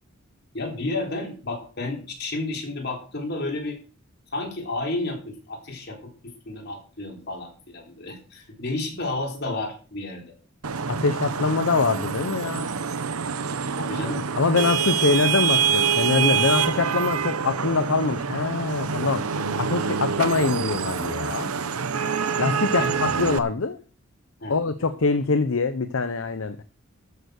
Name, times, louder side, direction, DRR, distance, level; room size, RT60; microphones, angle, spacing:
voice 1, 0.5-3.8 4.3-10.3 13.8-14.3 22.7-23.1 24.4-24.5, left 2 dB, 50° left, 3.8 m, -31 dB
Vehicle horn car horn honking / Traffic noise roadway noise, 10.6-23.4, right 6 dB, 90° right, 0.9 m, -26 dB
voice 2, 10.9-12.7 14.4-19.3 19.6-21.5 22.4-23.8 24.5-26.6, left 4 dB, 65° left, 0.7 m, -24 dB
13.5 x 6.8 x 6.5 m
head